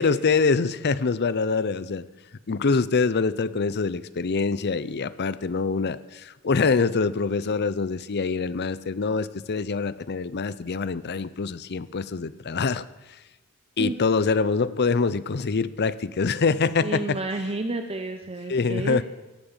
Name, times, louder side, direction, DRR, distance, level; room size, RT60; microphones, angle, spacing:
voice 1, 0.0-2.0 2.5-12.8 13.8-17.2 18.5-19.0, left 4 dB, 50° left, 16 dB, 0.6 m, -25 dB
voice 2, 16.8-19.0, right 2 dB, 25° right, 6 dB, 0.8 m, -30 dB
17.0 x 9.1 x 7.3 m, 1.1 s
head